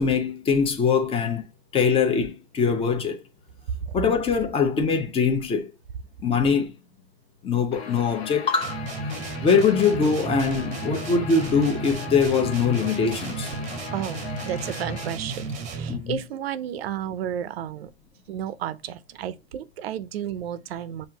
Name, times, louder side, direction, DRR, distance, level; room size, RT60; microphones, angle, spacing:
voice 1, 0.0-1.4 1.7-3.2 3.9-5.7 6.2-6.7 7.4-8.8 9.4-13.5 15.9-16.2, left 5 dB, 20° left, 0.8 m, -22 dB
Guitar, 7.7-15.1, left 6 dB, 85° left, 1.1 m, -39 dB
sound 1, 8.6-16.1, right 3 dB, 25° right, 0.8 m, -33 dB
voice 2, 13.9-15.4 15.7-17.9 18.3-21.1, right 10 dB, 70° right, 0.6 m, -32 dB
5.5 x 2.6 x 2.8 m
hypercardioid pair, 130°, 31 cm